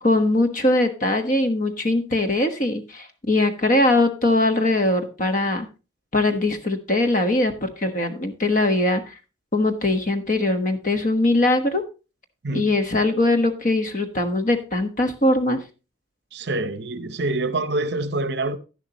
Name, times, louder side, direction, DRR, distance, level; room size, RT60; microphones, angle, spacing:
voice 1, 0.0-5.7 6.1-9.1 9.5-11.9 12.5-15.6, left 2 dB, 40° left, 1.2 m, -21 dB
voice 2, 16.3-18.6, right 2 dB, 60° right, 0.8 m, -26 dB
11.0 x 11.0 x 2.9 m
head